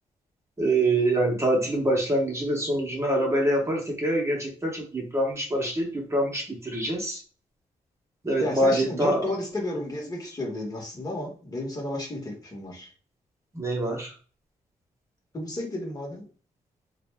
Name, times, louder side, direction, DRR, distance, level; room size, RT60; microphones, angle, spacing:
voice 1, 0.6-7.2 8.2-9.2 13.5-14.1, right 1 dB, 20° right, -1 dB, 0.8 m, -25 dB
voice 2, 8.4-12.9 15.3-16.2, left 1 dB, 25° left, -1 dB, 1.0 m, -32 dB
2.5 x 2.1 x 3.2 m, 0.39 s
cardioid pair, 100°, 14 cm